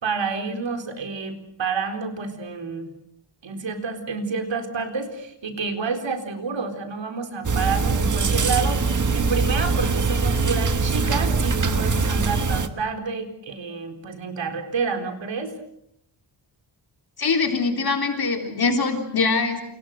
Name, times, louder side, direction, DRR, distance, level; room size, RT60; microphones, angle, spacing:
voice 1, 0.0-2.9 3.4-15.5, right 5 dB, 75° right, 6 dB, 4.4 m, -29 dB
sound 1, 7.4-12.7, right 4 dB, 40° right, 1.6 m, -22 dB
voice 2, 17.2-19.6, left 4 dB, 55° left, 3 dB, 3.8 m, -23 dB
29.5 x 28.5 x 6.6 m, 0.76 s
wide cardioid pair, 175°, 45 cm